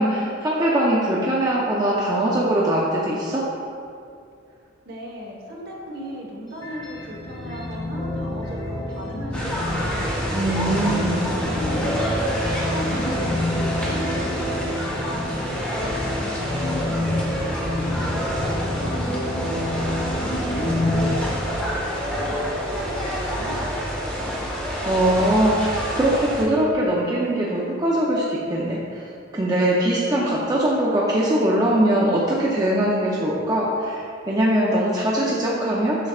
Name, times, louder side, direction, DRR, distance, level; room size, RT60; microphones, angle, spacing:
voice 1, 0.0-3.4 10.3-11.3 24.8-29.1 29.3-36.1, right 1 dB, 20° right, -5 dB, 0.6 m, -21 dB
voice 2, 4.8-10.1 10.9-14.7 15.7-24.4, equal, 55° right, -2 dB, 1.2 m, -37 dB
sound 1, 6.5-21.1, left 1 dB, 20° left, 1.3 m, -28 dB
sound 2, 9.3-26.4, equal, 5° left, 1.1 m, -28 dB
7.6 x 6.0 x 2.4 m, 2.4 s
head